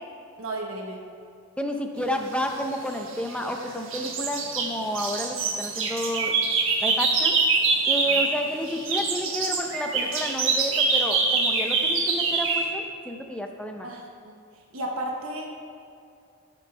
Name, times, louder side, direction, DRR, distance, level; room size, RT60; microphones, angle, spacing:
voice 1, 0.4-1.0 8.1-8.3 13.8-14.4 14.7-15.5, right 1 dB, 85° right, -1 dB, 1.2 m, -34 dB
voice 2, 1.6-6.3 6.8-7.4 7.9-13.9, equal, 5° left, 3 dB, 0.6 m, -31 dB
sound 1, 2.8-3.6 3.9-8.4 8.7-12.7, right 4 dB, 65° right, 1.2 m, -24 dB
14.5 x 6.1 x 3.3 m, 2.4 s
head